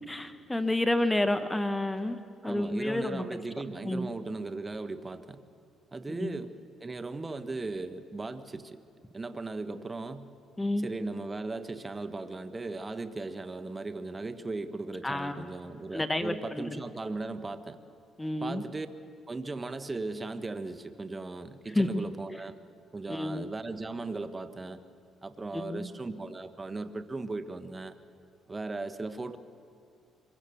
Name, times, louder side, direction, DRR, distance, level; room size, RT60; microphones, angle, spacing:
voice 1, 0.1-2.2 2.4-3.2 3.8-4.1 6.2-6.4 10.6-10.9 15.0-15.5 15.9-16.8 18.2-18.6 21.7-21.9 23.1-23.4 25.5-25.9, left 1 dB, 10° left, 10 dB, 1.3 m, -30 dB
voice 2, 2.4-5.4 5.9-6.5 6.8-8.8 9.1-10.3 10.8-17.8 18.4-18.9 19.3-22.6 22.9-24.8 25.2-28.0 28.5-29.4, right 3 dB, 25° right, 10 dB, 1.4 m, -37 dB
25.0 x 23.0 x 7.1 m, 2.4 s
supercardioid pair, 75°, 0 cm